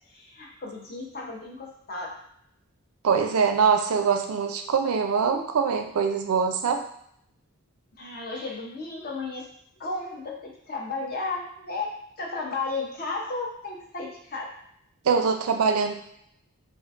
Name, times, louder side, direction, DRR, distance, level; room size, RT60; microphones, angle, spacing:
voice 1, 0.1-2.2 8.0-9.5 9.8-14.5, left 3 dB, 45° left, -1 dB, 0.6 m, -34 dB
voice 2, 3.0-6.8 15.0-15.9, right 6 dB, 80° right, 5 dB, 0.4 m, -23 dB
3.6 x 2.4 x 2.4 m, 0.71 s
head